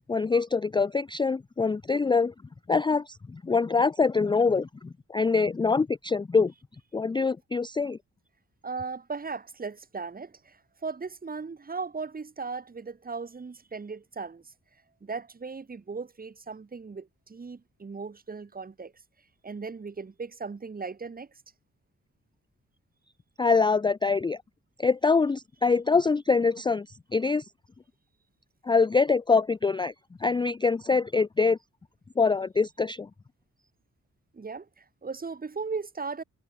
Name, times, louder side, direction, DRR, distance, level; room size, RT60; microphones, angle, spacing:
voice 1, 0.1-2.3 2.7-6.5 6.9-8.0 23.4-24.4 24.8-26.9 27.1-27.5 28.6-29.9 30.2-31.6 32.2-33.1, left 4 dB, 15° left, 0.4 m, -24 dB
voice 2, 8.6-14.5 15.0-18.9 19.4-21.4 34.3-36.2, right 4 dB, 30° right, 2.1 m, -37 dB
wide cardioid pair, 170°, 29 cm